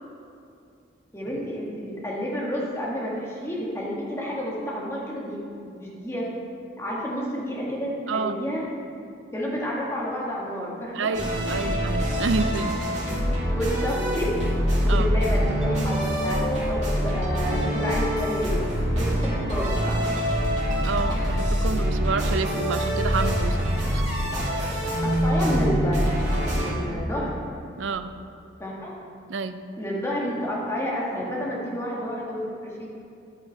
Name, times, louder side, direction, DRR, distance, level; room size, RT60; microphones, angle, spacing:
voice 1, 1.1-5.4 5.6-6.3 6.8-8.6 9.3-11.1 11.5-11.7 13.5-14.3 14.8-16.4 16.7-18.7 19.0-19.9 25.0-26.1 26.5-27.3 28.6-28.9 29.8-32.9, equal, 15° left, -5 dB, 1.4 m, -30 dB
voice 2, 10.9-12.8 14.9-15.1 20.8-24.0 27.8-28.1 29.3-29.6, right 4 dB, 75° right, 10 dB, 0.4 m, -29 dB
sound 1, 11.1-26.7, equal, 35° right, 2.3 m, -25 dB
11.0 x 5.6 x 4.5 m, 2.5 s
head